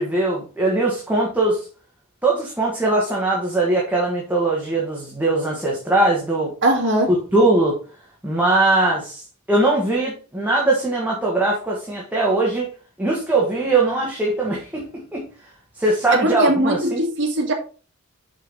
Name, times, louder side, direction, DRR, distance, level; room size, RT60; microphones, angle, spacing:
voice 1, 0.0-1.7 2.2-6.5 7.3-7.8 8.2-9.2 9.5-12.7 13.0-15.3 15.8-17.0, right 2 dB, 10° right, 1.6 m, -20 dB
voice 2, 6.6-7.1 16.1-17.5, right 1 dB, 55° right, 2.0 m, -20 dB
6.5 x 5.6 x 4.1 m
head